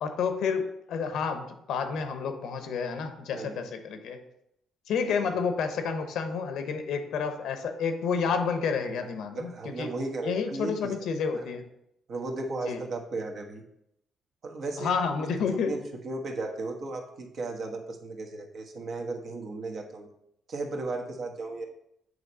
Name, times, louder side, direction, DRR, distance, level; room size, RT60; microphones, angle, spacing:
voice 1, 0.0-4.2 4.9-9.9 10.2-11.6 12.7-12.8 14.8-15.7, left 5 dB, 80° left, 7 dB, 0.9 m, -30 dB
voice 2, 3.3-3.6 5.2-5.3 9.3-10.9 11.3-11.5 12.1-13.6 14.4-15.1 15.7-20.1 20.5-21.6, right 3 dB, 60° right, 2 dB, 1.2 m, -35 dB
7.8 x 3.2 x 5.4 m, 0.78 s
cardioid pair, 90°, 0 cm